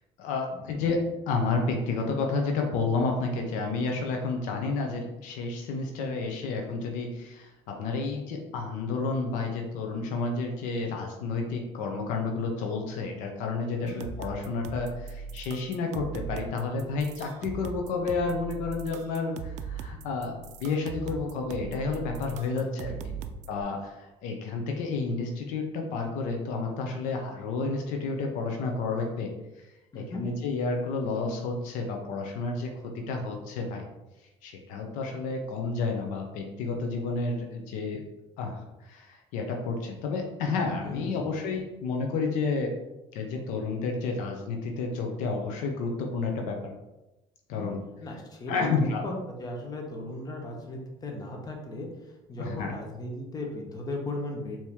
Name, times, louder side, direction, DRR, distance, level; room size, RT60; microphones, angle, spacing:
voice 1, 0.2-23.1 23.5-29.3 29.6-29.7 29.9-33.8 34.4-38.0 38.4-38.6 38.9-42.7 43.1-46.7 47.5-47.8 48.5-49.0 52.4-52.7, left 4 dB, 80° left, 2 dB, 0.7 m, -31 dB
sound 1, 13.9-23.6, right 5 dB, 60° right, 0.4 m, -40 dB
voice 2, 22.5-23.3 29.9-30.3 40.8-41.3 47.5-48.7 49.0-49.1 49.4-51.9 52.3-54.6, left 1 dB, 30° left, 1 dB, 1.0 m, -37 dB
4.5 x 2.9 x 3.5 m, 0.98 s
cardioid pair, 110°, 13 cm